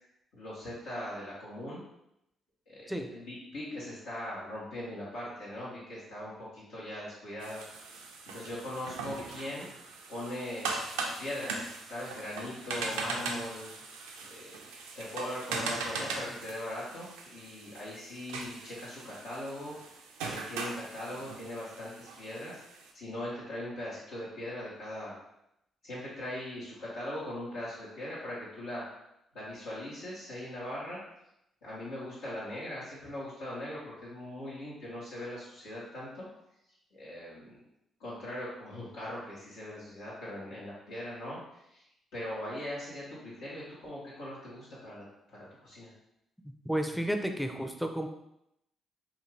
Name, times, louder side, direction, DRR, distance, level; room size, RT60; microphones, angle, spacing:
voice 1, 0.3-1.8 2.7-7.6 8.3-9.7 10.1-10.7 11.2-13.7 14.2-14.6 14.9-19.7 20.3-22.6 22.9-25.2 25.8-28.8 29.3-31.0 31.6-36.2 36.9-37.6 38.0-41.4 41.7-41.8 42.1-45.9, left 1 dB, 80° left, -9 dB, 0.9 m, -40 dB
sound 1, 7.4-22.9, right 3 dB, 90° right, 0.3 m, -40 dB
voice 2, 46.6-48.1, equal, ahead, 5 dB, 0.4 m, -32 dB
2.5 x 2.4 x 3.1 m, 0.81 s
hypercardioid pair, 50°, 0 cm